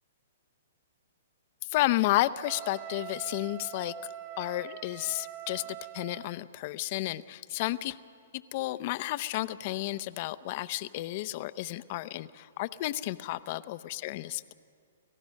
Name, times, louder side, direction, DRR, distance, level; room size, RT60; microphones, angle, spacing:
voice 1, 1.7-3.9 4.4-8.0 8.3-14.5, left 17 dB, 45° left, 15 dB, 0.6 m, -32 dB
Wind instrument woodwind instrument, 2.4-6.4, right 12 dB, 40° right, 3.1 m, -43 dB
29.0 x 15.0 x 6.5 m, 2.2 s
hypercardioid pair, 125°, 0 cm